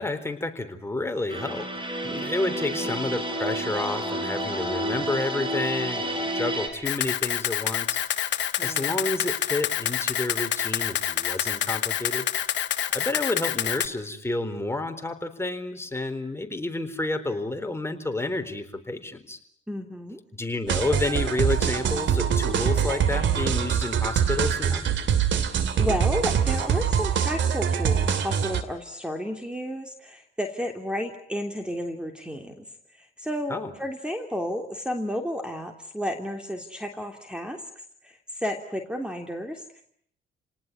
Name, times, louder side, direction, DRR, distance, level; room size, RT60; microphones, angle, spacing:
voice 1, 0.0-12.3 12.9-19.4 20.3-24.8 33.5-33.7, left 2 dB, 10° left, 7 dB, 3.9 m, -30 dB
sound 1, 1.3-6.7, right 1 dB, 25° right, 6.1 m, -30 dB
voice 2, 2.4-3.0 8.6-8.9 19.7-20.2 25.4-32.7 32.9-37.6 38.0-39.8, equal, 5° right, 4 dB, 3.2 m, -32 dB
Camera, 6.9-13.9, left 10 dB, 65° left, 1.7 m, -27 dB
sound 2, 20.7-28.6, right 7 dB, 70° right, 2.6 m, -24 dB
30.0 x 19.0 x 9.7 m, 0.68 s
cardioid pair, 90°, 20 cm